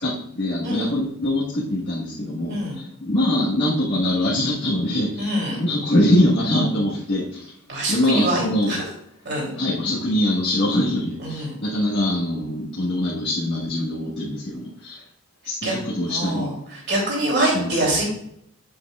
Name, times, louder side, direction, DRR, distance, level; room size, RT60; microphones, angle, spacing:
voice 1, 0.0-7.5 7.9-8.8 9.6-15.0 15.4-16.5 17.4-17.8, left 1 dB, 50° left, -8 dB, 1.5 m, -23 dB
voice 2, 2.5-2.8 5.2-5.6 7.7-8.8 9.2-9.5 11.2-11.5 15.6-15.8 16.1-18.0, right 1 dB, 50° right, -3 dB, 3.0 m, -24 dB
8.4 x 7.8 x 2.4 m, 0.72 s
head